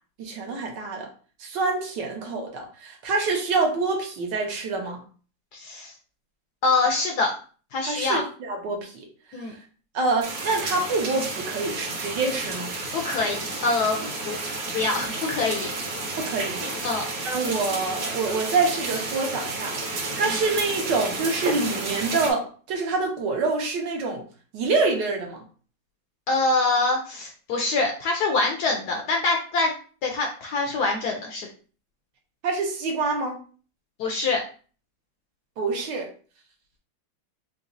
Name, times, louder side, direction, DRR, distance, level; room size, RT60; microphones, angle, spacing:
voice 1, 0.2-1.1 1.4-5.0 7.8-9.1 9.9-12.7 16.2-16.9 17.2-24.2 24.5-25.4 32.4-33.4 35.6-36.1, right 3 dB, 70° right, 2 dB, 1.3 m, -26 dB
voice 2, 5.5-5.9 6.6-7.3 7.7-8.2 9.3-9.5 12.9-13.4 13.6-14.4 14.7-15.7 16.8-17.1 20.2-20.4 26.3-29.7 30.0-31.5 34.0-34.4, left 3 dB, 70° left, 1 dB, 1.0 m, -25 dB
sound 1, 10.2-22.3, right 2 dB, 55° right, 1.1 m, -31 dB
4.0 x 2.7 x 2.6 m, 0.39 s
omnidirectional pair, 2.1 m